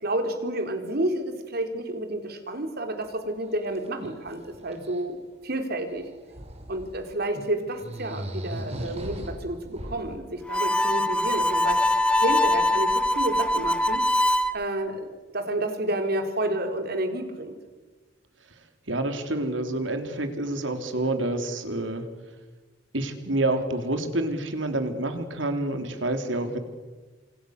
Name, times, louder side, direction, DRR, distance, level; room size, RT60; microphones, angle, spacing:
voice 1, 0.0-5.2 5.4-6.1 6.7-14.0 14.5-15.1 15.3-17.5, right 1 dB, 60° right, 6 dB, 4.1 m, -30 dB
sound 1, 3.0-3.1 3.4-5.0 5.9-7.0 7.3-7.5 7.7-10.1, equal, 35° right, 4.8 m, -38 dB
Harmonica, 10.5-14.5, left 1 dB, 5° left, 1.0 m, -23 dB
voice 2, 18.9-22.0 22.9-26.6, right 2 dB, 85° right, 7 dB, 3.7 m, -28 dB
29.0 x 28.0 x 6.8 m, 1.3 s
head